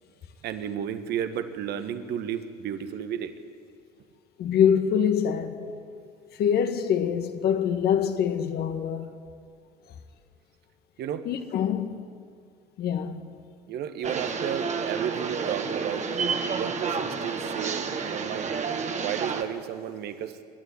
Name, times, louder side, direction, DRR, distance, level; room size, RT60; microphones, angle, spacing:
voice 1, 0.4-3.3 11.0-11.2 13.7-16.1 16.5-18.5 19.0-20.4, right 9 dB, 50° right, 1.6 m, -33 dB
voice 2, 4.4-5.7 6.3-9.2 11.3-12.1 12.8-13.2, left 8 dB, 50° left, 1.7 m, -25 dB
sound 1, 14.0-19.4, right 5 dB, 35° right, 1.8 m, -30 dB
27.0 x 12.0 x 8.6 m
hypercardioid pair, 65°, 21 cm